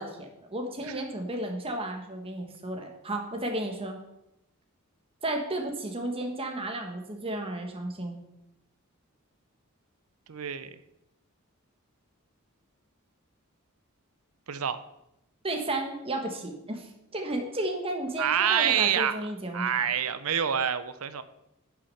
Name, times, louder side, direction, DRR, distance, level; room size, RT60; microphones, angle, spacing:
voice 1, 0.0-4.0 5.2-8.2 15.4-19.8, right 1 dB, 25° right, 3 dB, 1.5 m, -33 dB
voice 2, 10.3-10.8 14.5-14.8 18.2-19.2 19.5-21.2, right 8 dB, 85° right, 12 dB, 0.7 m, -27 dB
9.8 x 6.2 x 5.6 m, 0.86 s
head